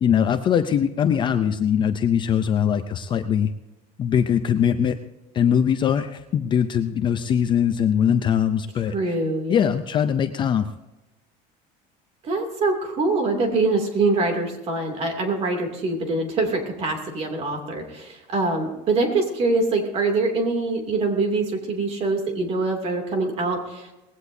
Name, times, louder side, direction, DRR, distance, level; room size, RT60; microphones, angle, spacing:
voice 1, 0.0-3.5 4.0-5.0 5.3-9.0 9.5-10.7, left 8 dB, 25° left, 9 dB, 0.5 m, -21 dB
voice 2, 8.9-9.5 12.2-23.9, right 3 dB, 35° right, 3 dB, 2.7 m, -24 dB
19.5 x 16.0 x 2.7 m, 0.99 s
cardioid pair, 175°, 18 cm